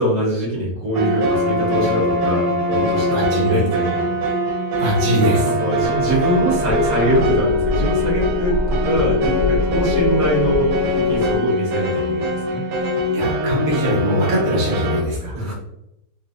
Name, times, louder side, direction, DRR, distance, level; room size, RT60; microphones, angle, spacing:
voice 1, 0.0-4.1 5.4-12.6 15.3-15.5, right 1 dB, 55° right, -5 dB, 1.4 m, -23 dB
sound 1, 0.9-15.0, equal, 80° right, 1.3 m, -22 dB
voice 2, 3.1-3.6 4.8-5.5 13.1-15.3, equal, 40° right, -4 dB, 0.7 m, -21 dB
sound 2, 5.8-11.4, left 2 dB, 65° left, 1.0 m, -25 dB
4.1 x 2.2 x 2.4 m, 0.82 s
omnidirectional pair, 1.9 m